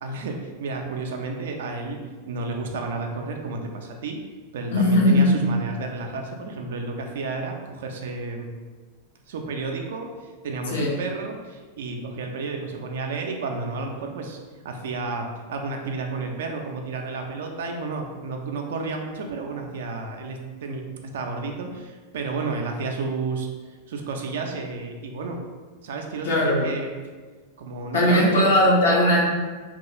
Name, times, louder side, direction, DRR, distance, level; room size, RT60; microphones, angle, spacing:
voice 1, 0.0-2.0 2.3-4.2 4.5-8.5 9.3-14.4 14.6-20.8 21.1-25.4 25.8-26.9 27.6-28.6, right 3 dB, 60° right, 3 dB, 0.4 m, -31 dB
voice 2, 4.7-5.3 10.7-10.9 26.2-26.6 27.9-29.2, left 1 dB, 65° left, -3 dB, 0.7 m, -18 dB
3.0 x 2.3 x 2.8 m, 1.4 s
figure-of-eight pair, 90°, 0 cm